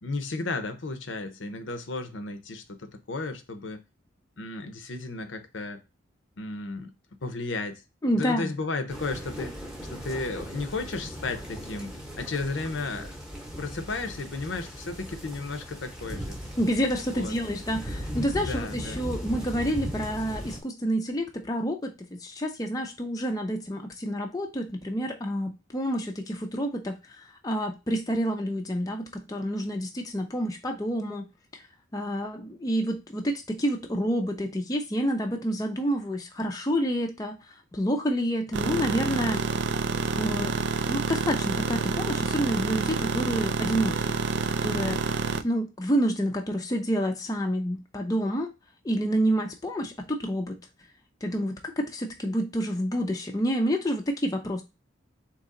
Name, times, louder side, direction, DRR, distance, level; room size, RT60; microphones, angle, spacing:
voice 1, 0.0-3.8 4.4-5.8 6.4-6.9 7.2-7.8 8.1-9.6 9.9-13.1 13.6-16.4 17.1-17.3 18.5-19.0, left 3 dB, 70° left, 0.7 m, -34 dB
voice 2, 8.0-8.5 16.6-31.3 31.5-31.6 31.9-39.4 40.2-40.6 40.9-44.1 44.5-48.5 48.8-50.6 51.2-54.6, equal, 20° left, 0.5 m, -29 dB
sound 1, 8.9-20.6, equal, 5° right, 0.9 m, -38 dB
sound 2, 38.5-45.4, right 4 dB, 60° right, 0.4 m, -28 dB
4.0 x 2.9 x 3.7 m
head